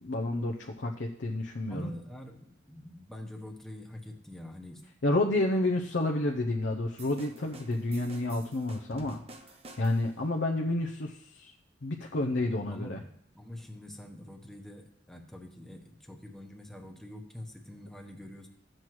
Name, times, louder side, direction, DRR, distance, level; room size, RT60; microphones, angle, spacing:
voice 1, 0.0-1.9 5.0-9.2 9.8-11.5 11.8-13.0, left 2 dB, 65° left, 2 dB, 0.6 m, -30 dB
voice 2, 1.7-4.8 12.7-13.0 13.3-18.5, left 1 dB, ahead, 3 dB, 1.0 m, -45 dB
sound 1, 7.0-10.2, right 2 dB, 30° right, 0.7 m, -50 dB
13.0 x 7.6 x 3.1 m, 0.71 s
head